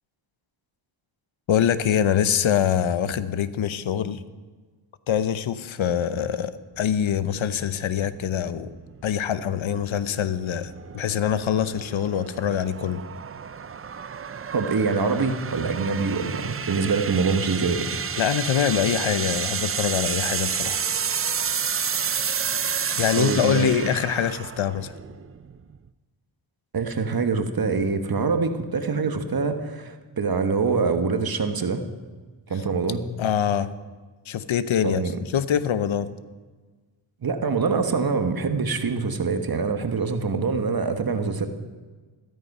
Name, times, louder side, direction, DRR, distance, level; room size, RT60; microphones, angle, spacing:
voice 1, 1.5-4.2 5.1-8.7 9.0-13.0 18.2-20.8 23.0-24.9 33.2-33.7 34.3-35.0 35.3-36.1, left 9 dB, 75° left, 14 dB, 0.9 m, -24 dB
sound 1, 6.8-25.9, right 7 dB, 30° right, 0.5 m, -31 dB
voice 2, 14.5-17.9 23.2-23.7 26.7-31.9 32.5-33.1 34.8-35.1 37.2-41.5, right 4 dB, 45° right, 7 dB, 1.3 m, -24 dB
14.0 x 12.5 x 5.5 m, 1.4 s
cardioid pair, 75°, 48 cm